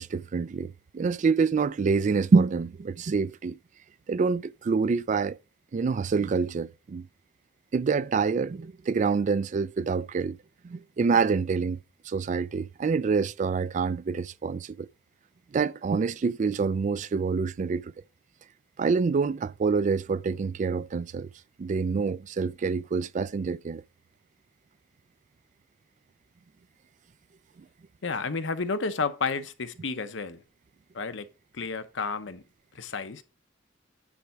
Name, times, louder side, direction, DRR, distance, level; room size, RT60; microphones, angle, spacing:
voice 1, 0.0-3.6 4.1-5.4 5.7-7.1 7.7-10.4 10.6-11.8 12.1-14.9 15.5-17.9 18.8-21.3 21.6-23.8, right 5 dB, 40° right, 0.3 m, -26 dB
voice 2, 28.0-30.4 30.9-31.3 31.5-32.4 32.7-33.2, left 4 dB, 65° left, 0.8 m, -31 dB
9.9 x 3.4 x 5.7 m
head